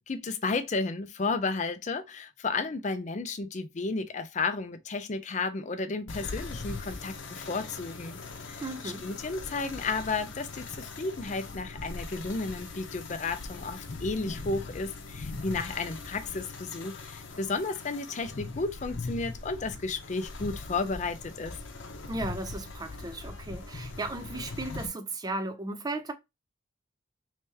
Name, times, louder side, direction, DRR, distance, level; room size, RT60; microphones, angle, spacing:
voice 1, 0.1-21.6, left 3 dB, 35° left, 0.5 m, -33 dB
sound 1, 6.1-24.9, left 3 dB, 75° left, 0.7 m, -41 dB
voice 2, 8.6-9.0 22.1-26.1, right 2 dB, 20° right, 0.4 m, -35 dB
3.2 x 3.0 x 3.4 m
head